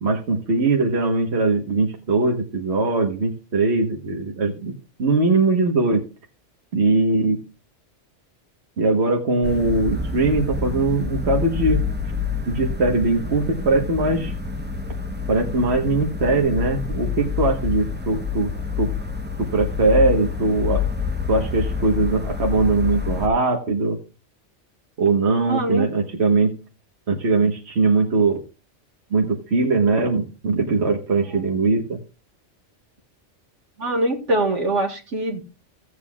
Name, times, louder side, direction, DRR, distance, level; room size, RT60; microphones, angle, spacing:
voice 1, 0.0-4.7 5.0-6.0 6.7-7.4 8.8-11.8 12.5-14.3 15.3-18.5 18.8-18.9 19.4-20.8 21.3-24.0 25.0-26.5 27.1-28.4 29.1-32.0, right 3 dB, 65° right, 1.6 m, -21 dB
sound 1, 9.4-23.3, left 5 dB, 10° right, 0.9 m, -27 dB
voice 2, 25.5-25.9 33.8-35.4, right 1 dB, 85° right, 2.3 m, -23 dB
16.5 x 8.1 x 2.3 m
omnidirectional pair, 1.2 m